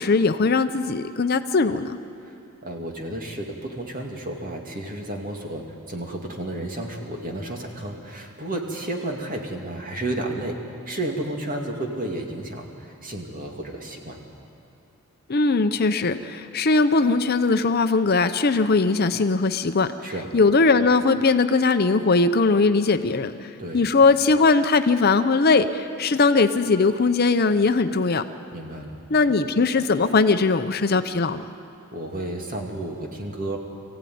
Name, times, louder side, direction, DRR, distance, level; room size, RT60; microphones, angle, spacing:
voice 1, 0.0-2.0 15.3-19.9 20.3-23.3 23.7-28.2 29.1-31.4, left 3 dB, 45° left, 9 dB, 0.7 m, -20 dB
voice 2, 2.6-5.6 5.9-10.5 10.9-14.2 20.0-20.3 23.6-23.9 28.5-29.0 31.9-33.6, right 1 dB, 40° right, 1 dB, 2.5 m, -32 dB
23.5 x 15.5 x 9.4 m, 2.5 s
head